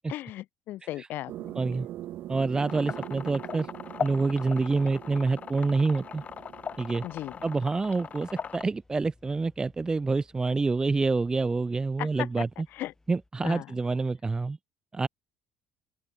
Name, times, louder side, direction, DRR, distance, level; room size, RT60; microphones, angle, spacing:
voice 1, 0.0-1.5 7.0-7.4 12.0-12.1 12.7-12.9 13.4-13.7, left 15 dB, 70° left, 0.5 m, -37 dB
sound 1, 1.3-8.5, right 13 dB, 65° right, 0.8 m, -43 dB
voice 2, 1.5-1.9 2.3-3.7 4.0-6.2 6.8-7.0 7.4-12.5 13.1-14.6 14.9-15.1, right 3 dB, 20° right, 0.4 m, -27 dB
sound 2, 2.6-8.6, left 7 dB, 40° left, 1.2 m, -39 dB
sound 3, 6.1-13.3, left 2 dB, 15° left, 7.9 m, -63 dB
open air
supercardioid pair, 85°, 4 cm